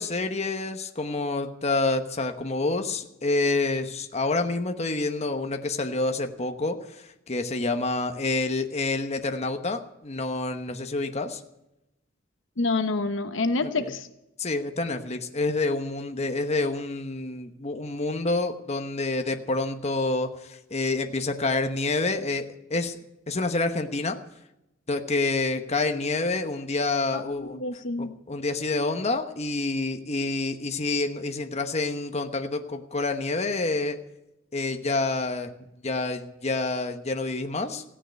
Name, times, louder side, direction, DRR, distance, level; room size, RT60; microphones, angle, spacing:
voice 1, 0.0-11.4 13.6-13.9 14.4-23.0 23.3-24.2 24.9-27.6 28.0-34.0 34.5-35.5 35.8-37.8, left 3 dB, 35° left, 6 dB, 1.1 m, -28 dB
voice 2, 12.6-14.1 27.1-28.2, left 3 dB, 70° left, 10 dB, 1.0 m, -28 dB
16.0 x 9.9 x 8.2 m, 0.89 s
head